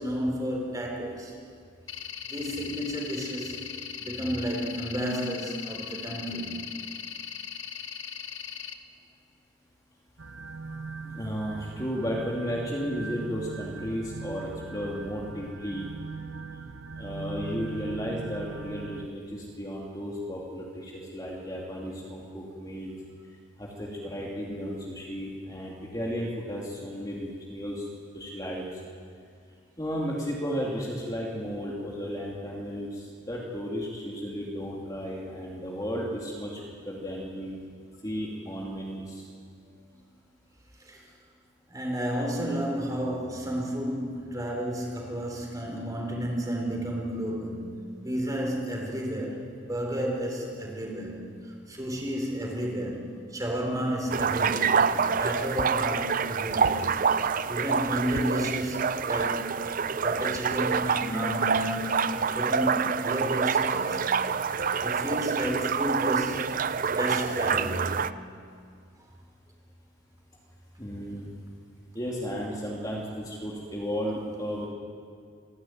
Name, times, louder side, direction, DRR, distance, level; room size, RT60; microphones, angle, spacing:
voice 1, 0.0-1.4 2.2-3.6 4.0-6.6 40.8-41.1 41.7-49.4 49.7-54.8 55.2-56.9 57.5-59.6 60.0-64.1 64.8-68.0, equal, 20° right, -1 dB, 4.1 m, -32 dB
sound 1, 1.9-8.7, left 8 dB, 80° left, 1.2 m, -39 dB
sound 2, 10.2-19.1, right 4 dB, 80° right, 0.9 m, -40 dB
voice 2, 11.0-15.9 17.0-22.9 23.6-27.9 28.1-28.7 29.8-36.6 36.8-37.6 38.0-39.3 70.8-71.3 71.9-74.7, equal, 20° left, -3 dB, 2.6 m, -34 dB
sound 3, 54.1-68.1, right 6 dB, 40° right, 0.5 m, -27 dB
26.5 x 12.0 x 9.3 m, 2.2 s
head